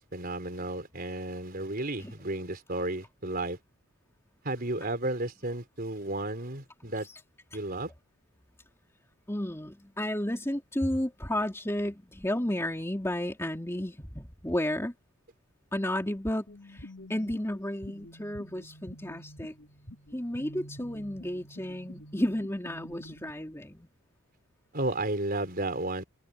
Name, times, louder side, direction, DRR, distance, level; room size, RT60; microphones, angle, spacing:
voice 1, 0.0-3.6 4.4-7.1 7.5-7.9 24.7-26.0, right 2 dB, 45° right, 4.4 m, -33 dB
voice 2, 9.3-14.9 15.7-19.5 20.1-23.9, left 1 dB, 10° left, 2.9 m, -32 dB
sound 1, 16.5-23.3, equal, 55° left, 4.0 m, -48 dB
head